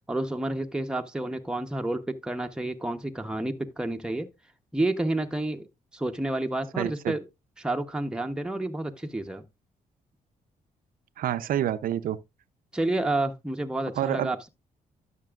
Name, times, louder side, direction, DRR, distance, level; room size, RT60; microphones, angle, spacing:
voice 1, 0.1-4.3 4.7-5.7 5.9-7.2 7.6-9.4 12.7-14.5, right 2 dB, 5° right, 0.9 m, -30 dB
voice 2, 6.8-7.1 11.2-12.2 14.0-14.3, right 11 dB, 70° right, 0.6 m, -28 dB
12.0 x 6.0 x 2.4 m
supercardioid pair, 65°, 15 cm